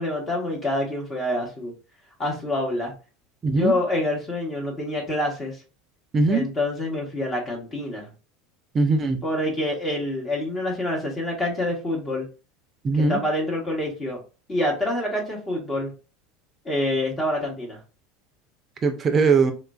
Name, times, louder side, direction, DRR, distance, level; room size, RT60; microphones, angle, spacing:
voice 1, 0.0-1.7 2.2-2.9 3.4-5.6 6.3-8.1 9.2-12.3 12.9-14.2 14.5-15.9 16.6-17.8, left 1 dB, 25° left, 0 dB, 0.9 m, -26 dB
voice 2, 3.4-3.7 6.1-6.4 8.7-9.2 12.8-13.2 18.8-19.5, right 4 dB, 30° right, 7 dB, 0.4 m, -20 dB
3.0 x 2.4 x 2.3 m, 0.33 s
supercardioid pair, 110°, 0 cm